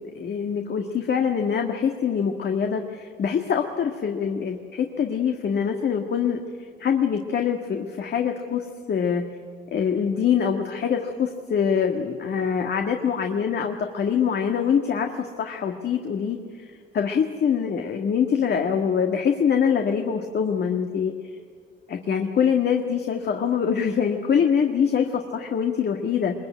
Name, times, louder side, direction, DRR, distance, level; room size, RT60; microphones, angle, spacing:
voice 1, 0.2-9.2 9.7-16.7 16.9-21.1 21.9-26.3, left 7 dB, 55° left, 3 dB, 1.8 m, -24 dB
22.0 x 22.0 x 9.2 m, 2.2 s
cardioid pair, 90°, 20 cm